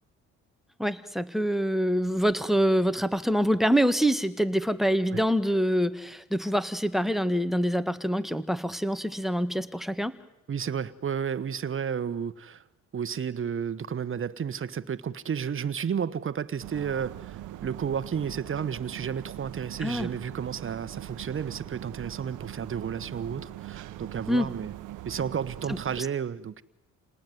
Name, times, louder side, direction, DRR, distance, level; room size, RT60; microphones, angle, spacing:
voice 1, 0.8-10.1 19.8-20.1 24.3-24.5 25.7-25.8, equal, ahead, 1.7 m, -25 dB
voice 2, 10.5-12.6 12.9-24.7 25.0-26.6, right 7 dB, 45° right, 1.3 m, -32 dB
sound 1, 16.6-26.0, right 14 dB, 85° right, 1.1 m, -42 dB
29.0 x 19.5 x 9.5 m
cardioid pair, 90°, 30 cm